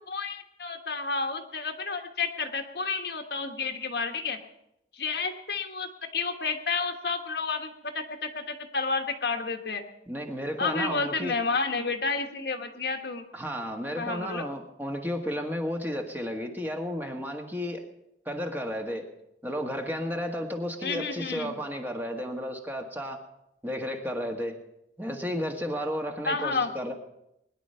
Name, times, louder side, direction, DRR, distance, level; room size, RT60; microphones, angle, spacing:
voice 1, 0.1-4.4 4.9-9.8 10.6-13.3 14.0-14.5 20.8-21.6 26.2-26.7, left 4 dB, 65° left, 5 dB, 1.4 m, -31 dB
voice 2, 10.1-11.4 13.3-17.8 18.2-19.1 19.4-23.2 23.6-24.6 25.0-26.9, equal, 10° right, 3 dB, 1.6 m, -33 dB
21.5 x 10.5 x 5.6 m, 0.81 s
head